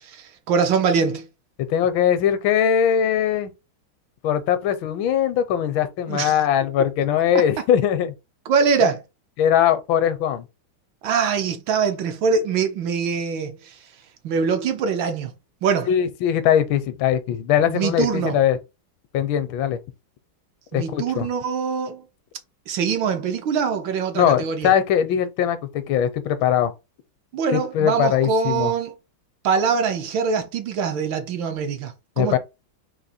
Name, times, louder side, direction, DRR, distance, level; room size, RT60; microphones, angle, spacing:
voice 1, 0.1-1.3 6.1-6.4 8.5-9.0 11.0-13.7 14.2-15.3 15.6-15.9 17.7-18.4 20.7-22.0 22.7-24.7 27.3-28.9 29.4-32.4, right 6 dB, 70° right, 1.5 m, -23 dB
voice 2, 1.7-3.5 4.2-8.1 9.4-10.4 15.9-18.6 19.1-19.8 20.7-21.3 24.1-26.7 27.5-28.7 32.2-32.4, left 9 dB, 80° left, 1.4 m, -21 dB
4.2 x 2.8 x 4.2 m
omnidirectional pair, 2.3 m